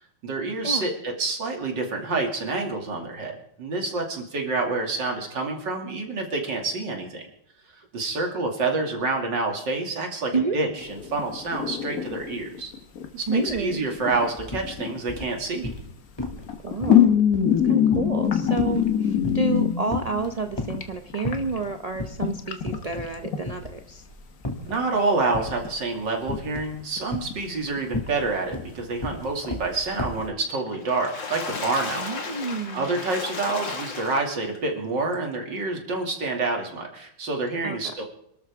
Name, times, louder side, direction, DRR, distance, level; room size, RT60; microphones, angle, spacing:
voice 1, 0.2-7.2 7.7-12.7 13.1-15.7 24.6-32.1 32.7-38.0, right 3 dB, 75° right, 2 dB, 3.2 m, -28 dB
sound 1, 10.8-13.1 13.4-15.3 16.3-20.8 21.1-23.4 24.5-24.7 25.0-25.1 25.4-26.0 26.3-26.4 26.7-27.3 27.8-28.3 28.6-28.7 29.1-29.2 29.4-30.2, left 9 dB, 55° left, 1.7 m, -24 dB
voice 2, 13.3-13.8 16.6-17.1 17.6-24.0 32.0-32.9 37.6-37.8, right 4 dB, 55° right, 5 dB, 0.4 m, -29 dB
sound 2, 13.5-13.7 14.0-14.7 15.1-15.9 16.2-16.5 16.8-19.6 19.9-20.9 21.2-21.7 22.0-22.2 22.6-23.2 23.4-24.8 25.3-25.7 26.3-26.7 27.1-30.3, left 2 dB, 15° left, 2.3 m, -33 dB
Water / Splash splatter, 30.7-34.6 35.1-35.2 35.6-35.7, left 4 dB, 90° left, 2.8 m, -34 dB
27.0 x 13.0 x 3.6 m, 0.73 s
omnidirectional pair, 1.9 m